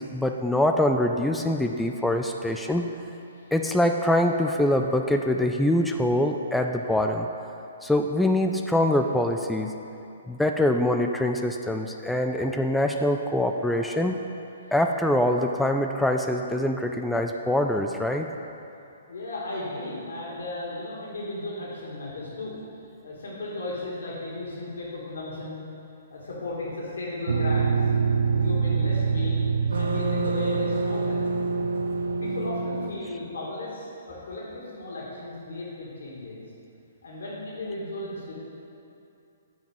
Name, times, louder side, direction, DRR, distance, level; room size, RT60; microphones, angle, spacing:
voice 1, 0.0-2.8 3.5-7.3 7.8-9.8 10.3-14.2 14.7-18.3, left 1 dB, 5° left, 3 dB, 0.3 m, -24 dB
voice 2, 19.0-22.6 23.0-25.7 26.1-27.8 28.3-29.4 29.7-31.3 32.2-36.4 37.0-38.3, left 2 dB, 75° left, -5 dB, 2.2 m, -35 dB
sound 1, 27.3-32.9, right 4 dB, 85° right, 0.6 m, -25 dB
7.8 x 4.6 x 7.1 m, 2.8 s
hypercardioid pair, 135°, 0 cm